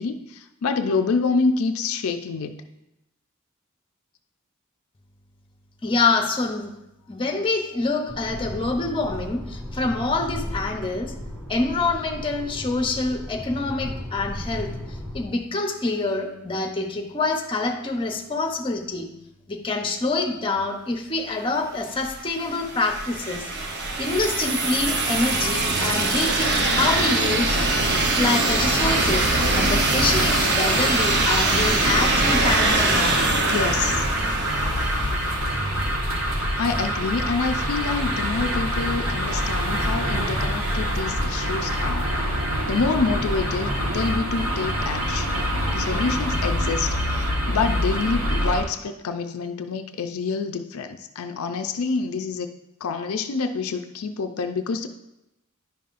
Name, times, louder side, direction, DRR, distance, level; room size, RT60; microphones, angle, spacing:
voice 1, 0.0-2.6 33.5-34.1 36.6-42.1 42.7-45.4 45.7-52.5 52.8-54.9, left 4 dB, 75° left, 6 dB, 0.4 m, -27 dB
voice 2, 5.8-6.7 7.1-11.1 11.5-14.7 15.1-19.1 19.5-23.4 24.0-27.6 28.1-29.3 29.6-33.2, left 3 dB, 25° left, 3 dB, 0.7 m, -26 dB
sound 1, 8.1-15.2, left 1 dB, 15° right, 2.6 m, -35 dB
sound 2, 22.0-35.7, right 2 dB, 55° right, 0.8 m, -23 dB
sound 3, 28.8-48.6, equal, 70° right, 1.4 m, -26 dB
10.5 x 5.5 x 2.5 m, 0.89 s
head